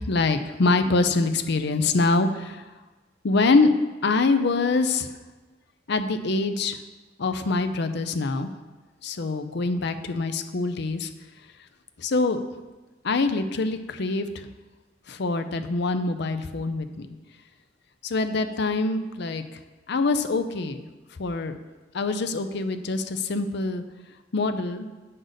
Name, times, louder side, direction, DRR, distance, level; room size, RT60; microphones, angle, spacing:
voice 1, 0.0-2.6 3.2-3.7 4.0-5.1 5.9-6.8 7.2-8.5 9.0-11.1 12.0-12.4 13.0-14.5 15.1-17.1 18.0-19.4 19.9-20.8 21.2-21.6 21.9-23.8 24.3-24.9, left 3 dB, 65° left, 8 dB, 0.6 m, -24 dB
7.8 x 6.5 x 4.0 m, 1.2 s
head